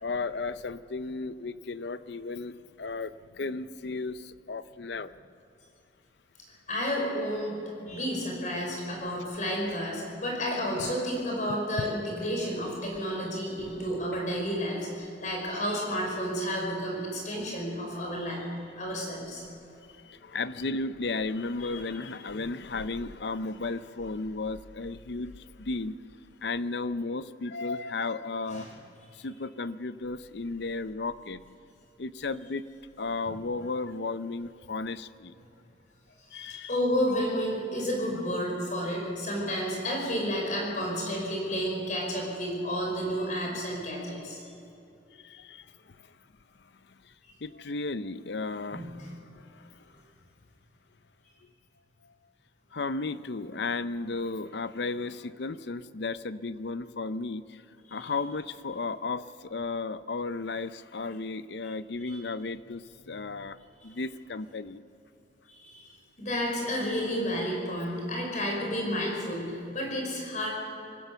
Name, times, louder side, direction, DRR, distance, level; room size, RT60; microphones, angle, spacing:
voice 1, 0.0-5.1 15.5-15.6 15.9-16.1 20.0-26.0 26.4-28.7 29.1-31.4 32.0-32.6 33.0-35.3 36.3-36.8 43.5-43.6 45.2-45.9 47.4-49.1 49.3-49.8 52.7-57.6 57.9-63.6 63.8-64.8, left 3 dB, 60° left, 14 dB, 0.6 m, -34 dB
voice 2, 6.7-7.6 7.9-18.4 18.8-19.4 21.6-21.8 28.5-28.7 36.3-44.4 48.7-49.1 57.9-58.1 62.1-62.2 65.5-70.5, equal, 45° left, -1 dB, 5.2 m, -31 dB
25.5 x 15.5 x 6.9 m, 2.7 s
head